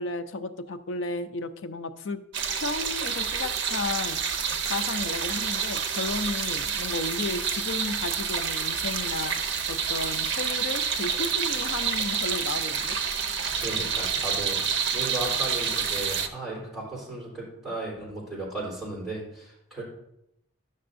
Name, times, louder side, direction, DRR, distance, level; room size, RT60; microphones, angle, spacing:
voice 1, 0.0-2.2 2.6-4.4 4.6-9.3 9.7-13.0, left 3 dB, 70° left, 10 dB, 0.5 m, -33 dB
sound 1, 2.3-16.3, right 6 dB, 60° right, 0.6 m, -28 dB
voice 2, 13.5-19.8, right 2 dB, ahead, -6 dB, 3.4 m, -35 dB
11.0 x 6.5 x 2.6 m, 0.80 s
head